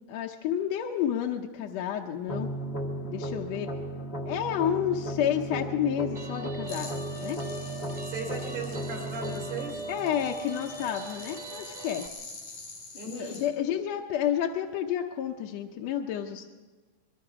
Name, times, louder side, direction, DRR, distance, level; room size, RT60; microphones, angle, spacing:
voice 1, 0.1-2.5 3.0-3.7 4.3-6.9 7.2-7.4 9.9-12.1 13.0-16.5, left 10 dB, 70° left, 1 dB, 2.0 m, -30 dB
sound 1, 2.3-11.3, right 1 dB, 45° left, 0.8 m, -36 dB
Guitar, 6.1-12.1, right 2 dB, 20° right, 1.2 m, -41 dB
sound 2, 6.7-13.5, left 3 dB, 90° left, 5.7 m, -46 dB
voice 2, 8.0-9.8 13.0-13.4, right 4 dB, 75° right, 1 dB, 5.0 m, -37 dB
23.5 x 22.5 x 4.9 m, 1.4 s
omnidirectional pair, 3.3 m